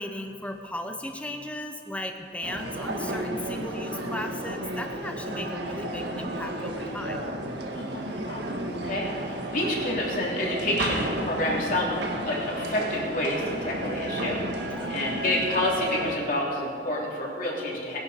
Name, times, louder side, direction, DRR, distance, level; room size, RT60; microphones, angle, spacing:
voice 1, 0.0-7.3 14.6-14.9, left 1 dB, 10° left, 5 dB, 0.7 m, -36 dB
sound 1, 2.4-16.2, right 1 dB, 85° right, 1.7 m, -32 dB
voice 2, 7.7-8.5 8.8-18.0, left 1 dB, 50° left, -3 dB, 3.4 m, -29 dB
20.0 x 11.0 x 5.1 m, 2.5 s
head